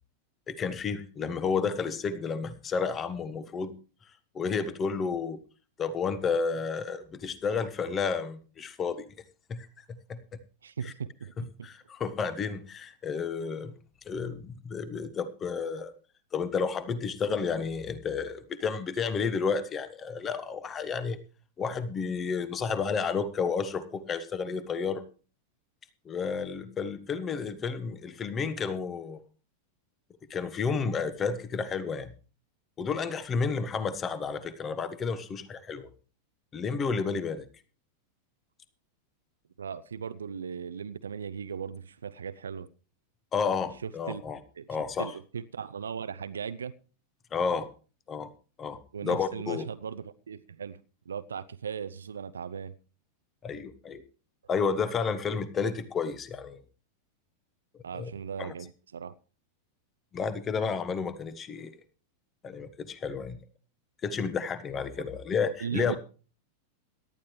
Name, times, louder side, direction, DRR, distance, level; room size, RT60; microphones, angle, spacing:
voice 1, 0.5-3.7 4.3-5.4 5.8-9.1 9.5-10.2 10.8-10.9 11.4-13.7 14.0-15.9 16.3-21.2 21.6-25.0 26.0-29.2 30.3-32.1 32.8-35.9 36.5-37.5 43.3-44.4 44.7-45.1 47.3-47.7 48.1-48.3 48.6-49.6 53.4-54.0 54.5-56.6 57.9-58.1 58.4-58.5 60.1-61.8 62.4-63.4 64.0-66.0, left 5 dB, 25° left, 14 dB, 1.3 m, -31 dB
voice 2, 10.6-11.3 11.6-11.7 39.6-42.7 43.8-44.2 44.6-44.7 45.0-46.7 48.9-50.8 51.1-52.7 57.8-59.1 65.0-65.1 65.6-66.0, right 7 dB, 70° right, 14 dB, 0.6 m, -37 dB
18.0 x 12.0 x 3.2 m, 0.36 s
figure-of-eight pair, 90°, 0 cm